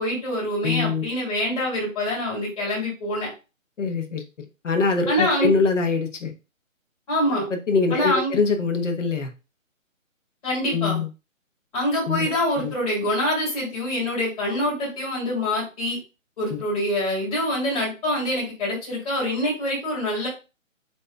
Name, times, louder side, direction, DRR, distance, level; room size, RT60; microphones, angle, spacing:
voice 1, 0.0-3.3 5.1-5.5 7.1-7.5 7.9-8.4 10.4-11.0 11.7-16.0 16.4-20.3, left 1 dB, 25° left, -5 dB, 2.9 m, -25 dB
voice 2, 0.6-1.0 3.8-4.2 4.6-6.3 7.7-9.3 10.6-11.1 12.1-12.3 12.6-12.7 16.5-16.6, left 4 dB, 60° left, 5 dB, 1.2 m, -23 dB
7.6 x 2.8 x 2.3 m, 0.30 s
figure-of-eight pair, 160°, 41 cm